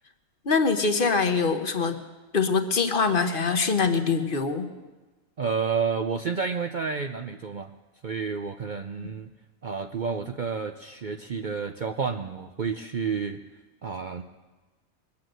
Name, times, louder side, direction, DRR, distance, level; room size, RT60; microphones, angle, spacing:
voice 1, 0.4-2.0 2.3-4.7, left 4 dB, 45° left, 7 dB, 1.1 m, -23 dB
voice 2, 5.4-7.7 8.0-9.3 9.6-13.4 13.8-14.2, right 5 dB, 50° right, 6 dB, 0.6 m, -30 dB
21.5 x 8.6 x 7.8 m, 1.2 s
omnidirectional pair, 1.4 m